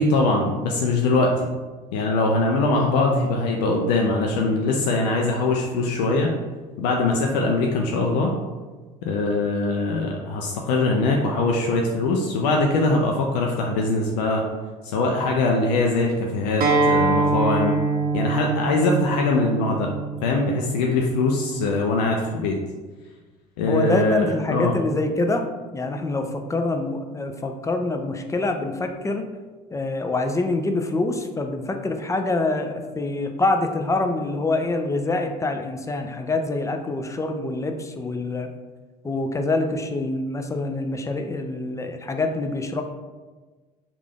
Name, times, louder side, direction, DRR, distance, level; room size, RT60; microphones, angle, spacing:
voice 1, 0.0-1.5 1.9-6.3 6.8-8.3 9.0-14.4 14.8-17.8 18.1-19.9 20.2-22.6 23.6-24.7, left 2 dB, 75° left, 0 dB, 0.4 m, -22 dB
Acoustic guitar, 16.6-21.8, right 3 dB, 45° right, 0.7 m, -24 dB
voice 2, 23.7-25.5 25.7-29.3 29.7-38.5 39.0-42.8, left 2 dB, 15° left, 5 dB, 0.4 m, -25 dB
3.3 x 2.4 x 3.5 m, 1.3 s
hypercardioid pair, 65°, 20 cm